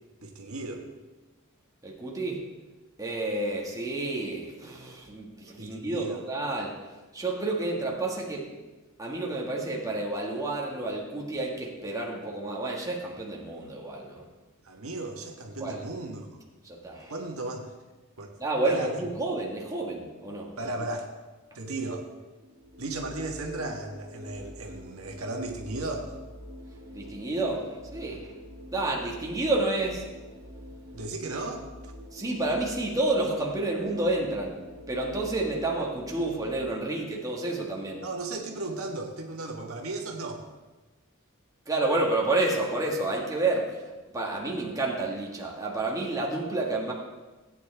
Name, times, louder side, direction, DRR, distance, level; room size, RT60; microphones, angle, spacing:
voice 1, 0.2-0.9 5.6-6.2 14.6-16.4 17.1-17.7 18.2-18.3 18.7-18.9 20.6-21.1 21.5-22.1 22.8-26.2 30.9-31.9 36.2-36.3 38.0-40.4, right 2 dB, 80° right, 1 dB, 1.5 m, -35 dB
voice 2, 1.8-2.4 3.0-6.8 7.1-8.5 9.0-14.3 15.6-15.8 16.6-17.1 18.4-20.7 26.9-28.3 28.7-30.1 32.1-34.6 34.9-38.0 41.7-46.9, right 2 dB, 15° right, -2 dB, 1.8 m, -30 dB
sound 1, 22.4-36.7, left 1 dB, 45° right, 1.4 m, -46 dB
17.0 x 9.2 x 3.5 m, 1.2 s
head